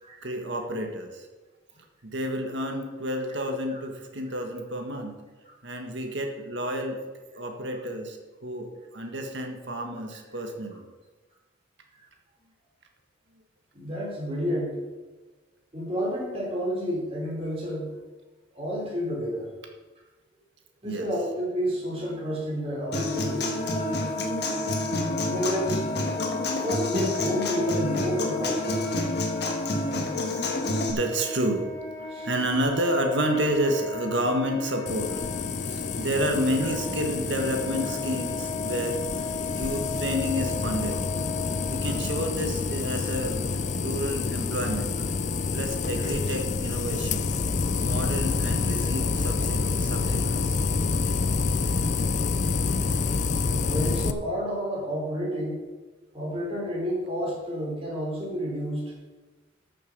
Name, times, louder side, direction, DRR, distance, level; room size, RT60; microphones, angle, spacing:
voice 1, 0.2-1.3 2.0-5.2 5.6-7.0 7.3-10.9 20.8-21.1 23.8-24.5 24.9-25.1 29.4-29.6 30.9-31.7 32.0-35.1 35.6-39.0 39.5-41.0 41.7-43.4 43.8-44.9 45.5-47.3 47.8-50.6, equal, 70° right, 4 dB, 1.6 m, -30 dB
voice 2, 13.7-14.7 15.7-17.9 18.5-19.5 20.8-23.5 25.2-25.8 26.6-29.0 32.1-32.3 53.6-55.6 56.1-58.8, equal, 30° right, -4 dB, 4.0 m, -30 dB
Wind instrument woodwind instrument, 22.8-42.3, left 4 dB, 20° left, 2.8 m, -36 dB
Human voice / Acoustic guitar, 22.9-30.9, left 1 dB, 55° left, 1.7 m, -28 dB
sound 1, 34.9-54.1, left 4 dB, 40° left, 0.5 m, -28 dB
13.0 x 6.7 x 5.4 m, 1.2 s
head